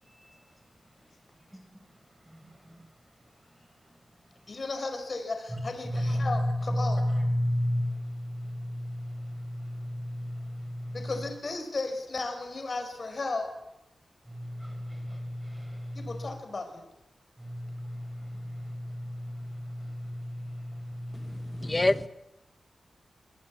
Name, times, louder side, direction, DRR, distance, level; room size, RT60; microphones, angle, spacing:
voice 1, 2.3-2.8 5.8-11.1 14.3-16.3 17.4-21.9, equal, 10° right, 6.6 m, -33 dB
voice 2, 4.5-7.0 10.9-13.5 15.9-16.9, left 3 dB, 40° left, 5.0 m, -35 dB
voice 3, 21.3-22.1, left 2 dB, 20° left, 1.1 m, -27 dB
24.5 x 21.5 x 8.6 m
wide cardioid pair, 155°, 0 cm